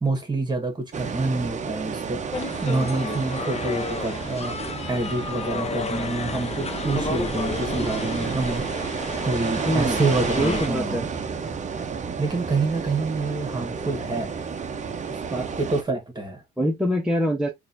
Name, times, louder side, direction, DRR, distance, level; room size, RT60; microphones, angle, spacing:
voice 1, 0.0-2.2 2.6-4.6 4.9-8.7 9.2-11.1 12.2-14.3 15.1-16.4, right 3 dB, 20° right, 1.5 m, -27 dB
sound 1, 0.9-15.8, right 5 dB, 35° right, 0.7 m, -31 dB
sound 2, 2.3-10.7, left 4 dB, 30° left, 0.8 m, -32 dB
voice 2, 9.6-10.0 10.4-11.0 16.6-17.5, equal, 5° right, 0.9 m, -24 dB
4.2 x 2.6 x 2.6 m
cardioid pair, 90°, 20 cm